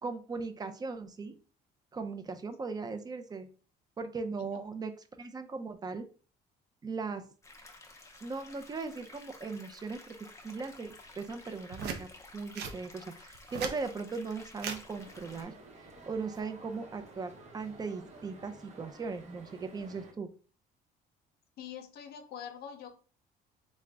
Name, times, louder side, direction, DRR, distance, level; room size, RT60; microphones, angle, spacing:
voice 1, 0.0-1.4 1.9-3.5 4.0-4.9 5.2-6.1 6.8-7.3 8.2-10.1 10.4-20.3, right 4 dB, 25° right, 8 dB, 0.5 m, -38 dB
sound 1, 7.4-15.4, left 2 dB, 15° left, 0.6 m, -53 dB
sound 2, 11.7-12.0 12.5-12.8 13.3-13.8 14.6-14.8 16.1-16.4, right 7 dB, 75° right, 0.6 m, -37 dB
sound 3, 15.0-20.1, right 2 dB, 45° right, 0.9 m, -53 dB
voice 2, 21.6-22.9, left 8 dB, 70° left, 7 dB, 0.7 m, -44 dB
3.7 x 2.1 x 3.4 m, 0.40 s
cardioid pair, 110°, 17 cm